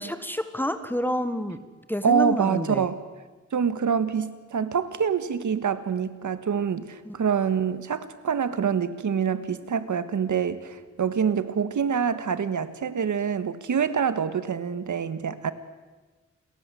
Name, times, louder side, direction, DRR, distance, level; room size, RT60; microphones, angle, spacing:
voice 1, 0.0-1.6 1.9-2.9 7.0-7.1 15.3-15.4, left 1 dB, 5° left, 10 dB, 1.5 m, -29 dB
voice 2, 2.0-3.0 3.5-15.5, right 7 dB, 85° right, 12 dB, 1.7 m, -26 dB
29.5 x 22.0 x 7.8 m, 1.2 s
wide cardioid pair, 145°, 29 cm